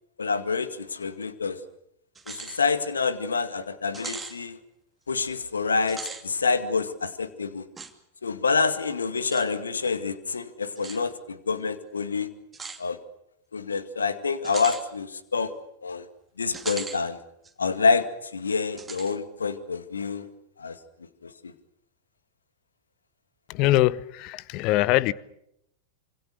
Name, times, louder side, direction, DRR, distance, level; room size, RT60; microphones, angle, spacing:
voice 1, 0.2-1.6 2.3-4.6 5.1-7.6 8.2-12.3 12.8-13.0 13.5-15.5 15.8-16.1 16.4-17.2 17.6-18.1 18.3-20.3 20.6-20.8 21.2-21.5, left 4 dB, 75° left, 2.0 m, -27 dB
sound 1, 2.2-2.6 3.0-3.1 3.9-4.4 5.8-6.2 7.8-7.9 9.3-9.5 10.8-11.0 12.5-12.8 14.4-14.8 16.5-17.0 17.4-17.5 18.8-19.1, right 4 dB, 15° right, 2.6 m, -38 dB
voice 2, 23.5-25.1, left 16 dB, 40° left, 0.9 m, -22 dB
26.5 x 26.0 x 6.8 m
figure-of-eight pair, 90°, 0 cm